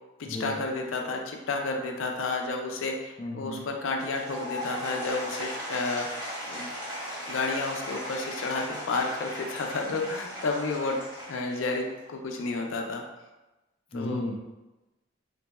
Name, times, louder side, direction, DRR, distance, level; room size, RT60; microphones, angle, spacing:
voice 1, 0.2-6.1 6.5-6.7 7.3-11.0 11.3-13.0 13.9-14.2, left 3 dB, 80° left, 2 dB, 0.5 m, -31 dB
voice 2, 3.2-3.6 13.9-14.3, left 1 dB, 30° left, -1 dB, 0.4 m, -33 dB
Applause / Crowd, 3.9-12.1, equal, 20° right, 0.8 m, -37 dB
4.1 x 2.6 x 2.2 m, 1.0 s
head